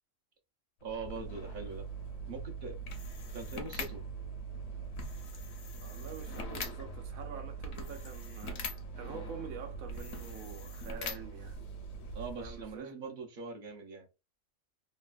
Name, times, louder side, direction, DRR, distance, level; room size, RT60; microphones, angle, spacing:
sound 1, 0.8-12.8, right 1 dB, 70° left, 1.0 m, -42 dB
voice 1, 0.8-1.9 2.3-2.8 3.3-4.0 12.1-14.1, right 4 dB, 50° right, 0.7 m, -42 dB
voice 2, 5.8-11.6 12.4-13.0, right 6 dB, 85° right, 1.1 m, -46 dB
3.0 x 2.2 x 2.4 m
omnidirectional pair, 1.4 m